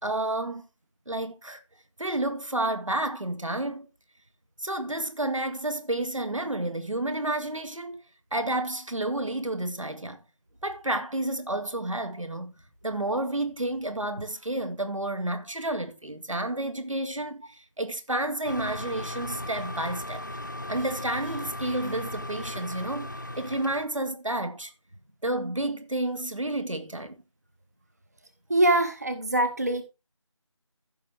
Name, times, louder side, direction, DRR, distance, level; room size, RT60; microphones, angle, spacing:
voice 1, 0.0-0.6 1.1-1.6 2.0-3.9 4.6-8.0 8.3-10.2 10.6-12.5 12.8-20.3 20.7-23.1 23.4-24.7 25.2-27.2, right 1 dB, 75° right, 2.0 m, -30 dB
sound 1, 18.4-23.8, left 1 dB, 35° left, 0.7 m, -37 dB
voice 2, 28.5-29.8, right 1 dB, 30° right, 0.8 m, -23 dB
15.0 x 6.0 x 3.3 m
figure-of-eight pair, 170°, 16 cm